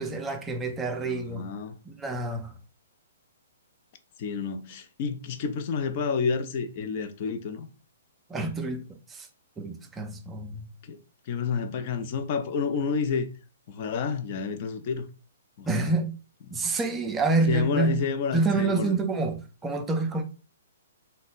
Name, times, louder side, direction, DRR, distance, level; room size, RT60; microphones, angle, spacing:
voice 1, 0.0-1.5 1.9-2.6 8.3-9.3 9.6-10.7 15.6-16.2 16.5-18.0 18.3-20.2, right 3 dB, 15° right, 0.4 m, -28 dB
voice 2, 1.0-1.8 4.2-7.7 10.9-11.0 11.3-13.3 13.7-15.1 15.6-15.9 17.5-19.0, left 5 dB, 40° left, 0.5 m, -29 dB
2.9 x 2.1 x 4.1 m
figure-of-eight pair, 120°, 0 cm